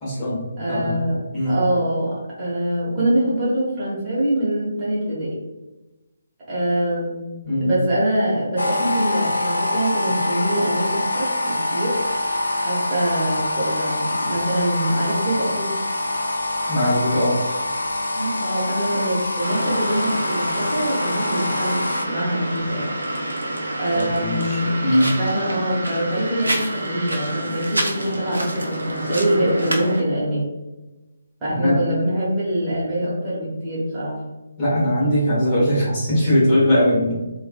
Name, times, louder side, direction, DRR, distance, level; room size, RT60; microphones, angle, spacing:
voice 1, 0.0-0.9 1.3-1.5 7.4-7.7 16.7-17.4 23.9-25.1 31.5-31.8 34.6-37.1, equal, 25° left, -9 dB, 1.3 m, -20 dB
voice 2, 0.6-5.4 6.5-7.3 7.6-12.0 12.6-15.7 18.0-23.0 23.8-24.7 25.0-30.5 31.4-34.2, right 1 dB, 20° right, -10 dB, 1.1 m, -24 dB
sound 1, 8.6-22.0, left 2 dB, 75° left, 0.4 m, -25 dB
sound 2, 19.4-30.0, right 1 dB, 75° right, 0.5 m, -28 dB
2.9 x 2.4 x 2.4 m, 1.1 s
figure-of-eight pair, 145°, 0 cm